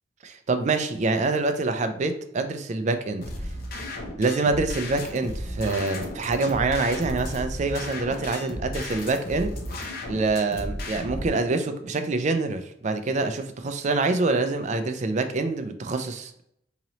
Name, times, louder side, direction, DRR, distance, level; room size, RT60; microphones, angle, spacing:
voice 1, 0.2-3.2 4.2-9.5 10.1-16.4, right 3 dB, 40° right, 8 dB, 0.4 m, -26 dB
sound 1, 3.2-11.3, left 1 dB, 50° left, 0.7 m, -34 dB
3.8 x 2.9 x 2.9 m, 0.74 s
head